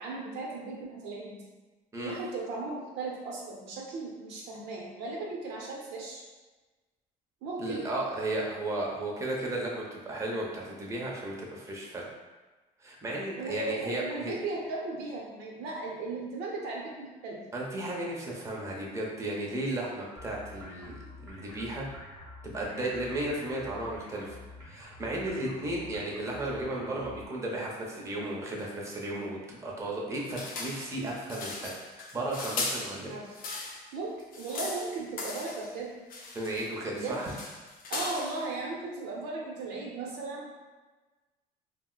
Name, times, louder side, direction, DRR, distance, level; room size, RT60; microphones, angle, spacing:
voice 1, 0.0-1.4 2.0-6.2 7.4-7.9 13.4-17.4 32.9-33.4 33.9-35.9 36.9-37.2 37.9-40.6, right 3 dB, 90° right, -2 dB, 0.7 m, -37 dB
voice 2, 7.6-12.1 12.8-14.3 17.5-21.9 22.4-24.4 24.7-33.2 36.3-37.3, right 1 dB, 15° right, -3 dB, 0.6 m, -34 dB
sound 1, 20.2-27.3, left 2 dB, 5° left, 0.9 m, -48 dB
sound 2, 30.3-33.9 34.2-35.7 36.1-36.7 37.0-38.5, left 3 dB, 60° left, 0.6 m, -38 dB
2.4 x 2.0 x 3.7 m, 1.2 s
cardioid pair, 110°, 17 cm